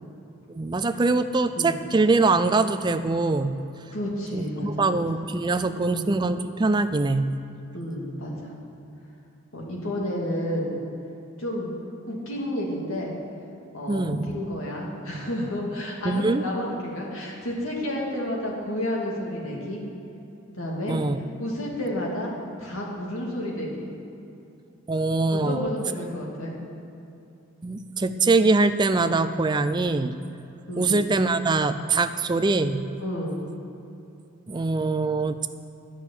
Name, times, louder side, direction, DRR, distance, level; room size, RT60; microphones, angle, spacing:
voice 1, 0.5-3.6 4.3-7.3 13.9-14.3 16.0-16.4 20.9-21.2 24.9-25.7 27.6-30.2 30.8-32.9 34.5-35.5, right 3 dB, 20° right, 11 dB, 0.4 m, -23 dB
voice 2, 3.9-5.2 5.8-6.1 7.7-8.5 9.5-10.7 11.4-11.7 12.1-13.1 13.7-19.8 20.5-21.0 21.4-22.3 22.6-23.9 25.3-26.6 30.7-31.0 33.0-33.4, left 1 dB, 70° left, -2 dB, 2.3 m, -31 dB
11.0 x 6.4 x 8.6 m, 2.9 s
head